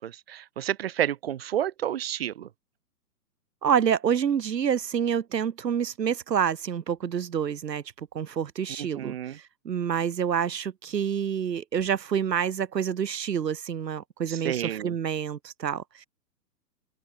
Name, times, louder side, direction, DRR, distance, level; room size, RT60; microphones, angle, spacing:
voice 1, 0.0-2.5 8.8-9.4 14.3-14.9, right 11 dB, 35° right, 2.0 m, -30 dB
voice 2, 3.6-7.8 8.1-16.1, right 8 dB, 80° right, 2.3 m, -28 dB
open air
hypercardioid pair, 175°, 49 cm